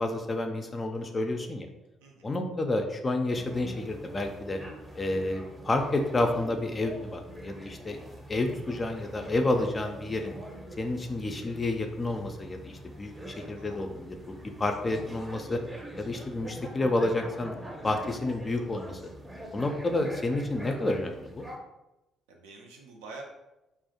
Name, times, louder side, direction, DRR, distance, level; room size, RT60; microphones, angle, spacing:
voice 1, 0.0-1.7 2.2-4.6 5.0-8.0 8.3-10.3 10.8-15.6 16.0-17.6 17.8-19.0 19.5-21.4, left 2 dB, 30° left, 5 dB, 0.3 m, -30 dB
voice 2, 2.0-2.4 13.4-13.8 22.3-23.2, right 3 dB, 80° right, 1 dB, 0.4 m, -47 dB
sound 1, 3.3-21.6, right 1 dB, 15° right, 0.6 m, -44 dB
2.3 x 2.0 x 2.7 m, 0.96 s
hypercardioid pair, 50°, 0 cm